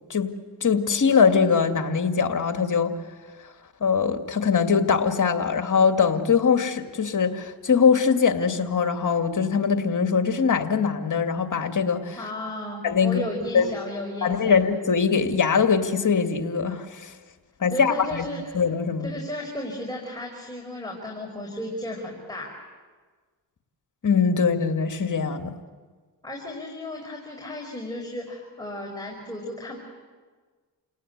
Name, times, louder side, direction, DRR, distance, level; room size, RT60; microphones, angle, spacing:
voice 1, 0.6-2.9 3.8-12.2 12.8-13.2 13.5-13.7 14.2-17.1 17.6-18.3 18.5-19.1 24.0-25.5, left 6 dB, 45° left, 6 dB, 2.3 m, -22 dB
voice 2, 12.2-14.6 17.7-18.6 19.0-22.5 26.2-29.8, left 1 dB, 10° left, -1 dB, 5.0 m, -34 dB
29.5 x 18.5 x 8.2 m, 1.5 s
cardioid pair, 75°, 41 cm